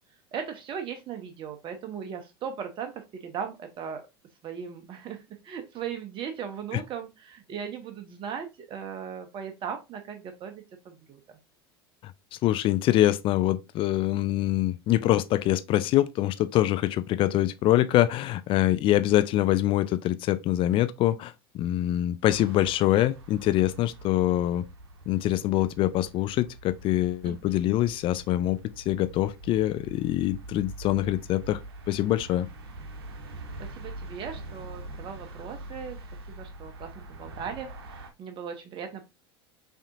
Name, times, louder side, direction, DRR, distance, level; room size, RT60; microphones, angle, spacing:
voice 1, 0.3-4.0 4.4-11.2 27.2-27.3 33.6-36.0 36.3-39.0, right 7 dB, 40° right, 0.8 m, -38 dB
voice 2, 12.0-24.6 25.1-31.6 31.9-32.5, left 14 dB, 40° left, 0.3 m, -24 dB
sound 1, 22.3-38.1, right 2 dB, 75° right, 0.8 m, -44 dB
5.7 x 2.8 x 2.5 m
hypercardioid pair, 85°, 13 cm